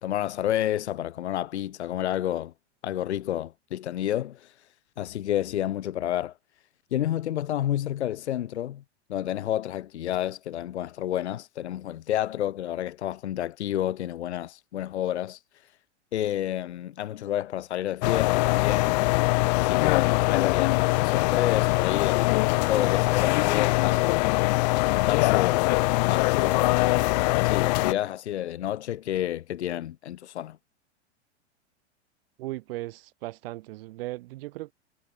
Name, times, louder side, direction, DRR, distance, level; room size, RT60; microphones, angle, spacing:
voice 1, 0.0-2.5 2.8-4.5 5.0-6.3 6.9-8.8 9.1-15.4 16.1-19.0 19.5-22.4 22.7-24.3 24.7-25.6 26.0-26.9 27.4-30.6, left 12 dB, 65° left, 0.9 m, -30 dB
sound 1, 18.0-27.9, left 23 dB, 40° left, 0.5 m, -22 dB
voice 2, 32.4-34.7, right 18 dB, 55° right, 3.6 m, -37 dB
figure-of-eight pair, 100°, 35 cm